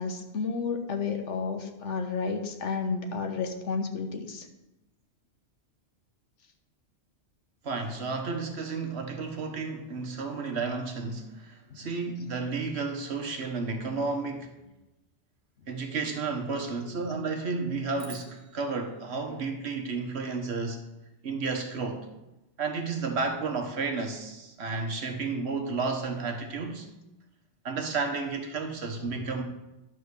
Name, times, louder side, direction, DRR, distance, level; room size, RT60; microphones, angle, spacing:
voice 1, 0.0-4.5 11.7-11.8 29.0-29.1, left 5 dB, 85° left, 1.3 m, -31 dB
voice 2, 7.6-14.5 15.7-20.9 21.2-22.1 22.6-26.9 27.6-29.4, right 4 dB, 65° right, 1.4 m, -32 dB
sound 1, 18.0-20.4, right 4 dB, 90° right, 1.6 m, -52 dB
11.0 x 4.0 x 6.7 m
omnidirectional pair, 1.2 m